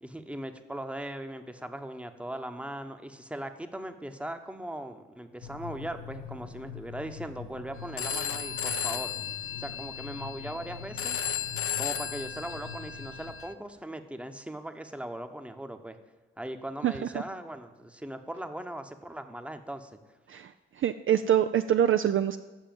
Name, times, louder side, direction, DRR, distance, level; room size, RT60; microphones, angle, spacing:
voice 1, 0.0-9.1 9.6-11.2 11.8-16.0 16.4-20.0, right 1 dB, 5° right, 7 dB, 1.0 m, -39 dB
sound 1, 5.4-13.3, left 6 dB, 90° left, 0.8 m, -44 dB
Telephone, 8.0-13.5, left 8 dB, 50° left, 0.7 m, -34 dB
voice 2, 20.8-22.4, right 10 dB, 45° right, 9 dB, 0.4 m, -24 dB
7.3 x 6.6 x 7.7 m, 1.3 s
hypercardioid pair, 40°, 29 cm